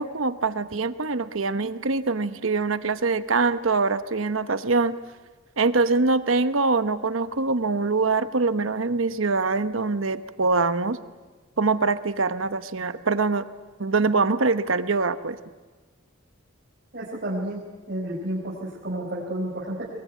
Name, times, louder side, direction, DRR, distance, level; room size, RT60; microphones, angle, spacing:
voice 1, 0.0-4.9 5.6-11.0 11.6-13.4 13.8-15.4, right 3 dB, 75° right, 11 dB, 1.0 m, -24 dB
voice 2, 16.9-19.9, right 1 dB, 50° right, -5 dB, 5.2 m, -31 dB
23.0 x 22.5 x 9.4 m, 1.3 s
head